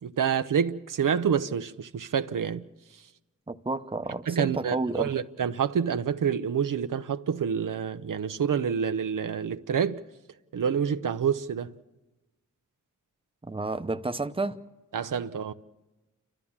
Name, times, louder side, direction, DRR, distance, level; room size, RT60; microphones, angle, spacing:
voice 1, 0.0-2.6 4.3-10.0 10.5-11.7 14.9-15.5, right 7 dB, 75° right, 0.7 m, -27 dB
voice 2, 3.5-5.1 13.4-14.6, right 3 dB, 15° right, 0.8 m, -31 dB
29.0 x 13.0 x 7.2 m
cardioid pair, 50°, 32 cm